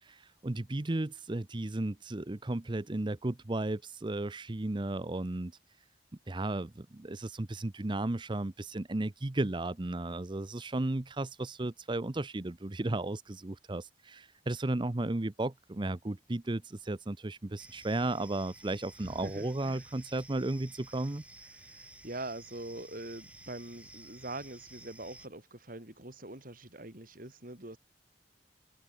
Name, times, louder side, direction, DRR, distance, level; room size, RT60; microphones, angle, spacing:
voice 1, 0.0-5.5 6.3-21.2, right 2 dB, 25° right, 0.7 m, -34 dB
sound 1, 17.6-25.3, right 2 dB, 10° right, 7.4 m, -53 dB
voice 2, 19.0-19.8 21.5-27.8, right 2 dB, 50° right, 4.9 m, -43 dB
head